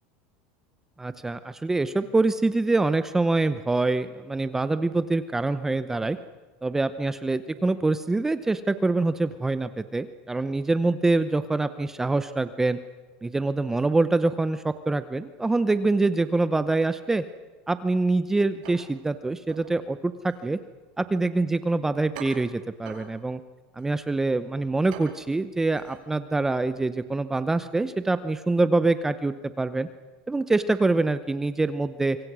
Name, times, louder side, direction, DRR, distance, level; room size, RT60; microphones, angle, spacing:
voice 1, 1.0-6.2 6.6-12.8 13.2-17.2 17.7-20.6 21.0-23.4 23.8-29.9 30.3-32.2, right 3 dB, 10° right, 12 dB, 0.7 m, -25 dB
sound 1, 18.6-26.8, right 6 dB, 75° right, 6.1 m, -48 dB
26.5 x 25.0 x 6.2 m, 1.4 s
supercardioid pair, 150°, 5 cm